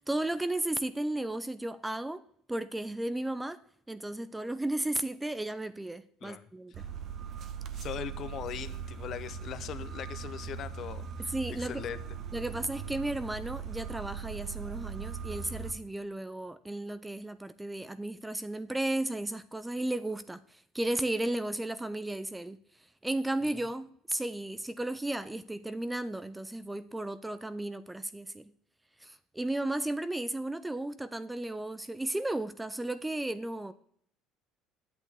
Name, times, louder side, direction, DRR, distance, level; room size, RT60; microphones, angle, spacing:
voice 1, 0.0-2.2 2.5-3.6 3.9-6.8 11.3-11.8 12.3-22.6 23.0-28.5 29.0-33.7, right 1 dB, 5° right, 13 dB, 0.3 m, -34 dB
sound 1, 6.7-15.7, right 7 dB, 45° right, 0.9 m, -40 dB
voice 2, 7.8-12.0, left 9 dB, 45° left, 13 dB, 0.7 m, -40 dB
10.5 x 8.4 x 3.5 m, 0.64 s
cardioid pair, 130°, 0 cm